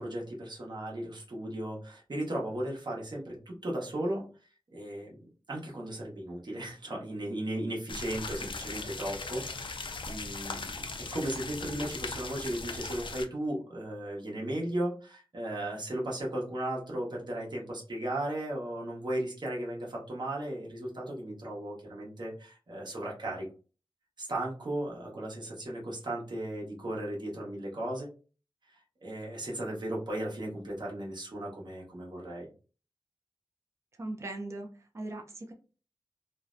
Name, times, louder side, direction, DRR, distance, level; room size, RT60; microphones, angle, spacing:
voice 1, 0.0-4.2 4.7-23.5 24.2-28.1 28.7-32.5, right 1 dB, 50° right, -3 dB, 0.9 m, -36 dB
sound 1, 7.9-13.3, left 3 dB, 65° left, 0.4 m, -39 dB
voice 2, 34.0-34.7 34.9-35.5, right 2 dB, 30° right, 3 dB, 0.4 m, -38 dB
2.5 x 2.1 x 2.4 m, 0.37 s
wide cardioid pair, 85°, 9 cm